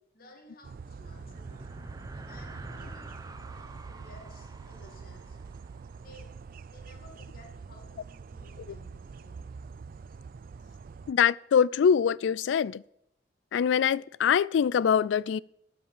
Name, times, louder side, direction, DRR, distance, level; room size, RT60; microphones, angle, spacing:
voice 1, 0.1-1.7 2.3-5.4 6.0-9.5, left 1 dB, 50° left, 2.2 m, -56 dB
sound 1, 0.6-11.1, right 5 dB, 50° right, 0.3 m, -45 dB
sound 2, 0.8-6.4, right 2 dB, 20° right, 0.7 m, -47 dB
voice 2, 11.1-12.8 13.5-15.4, left 7 dB, 70° left, 0.3 m, -24 dB
12.5 x 5.9 x 7.4 m
head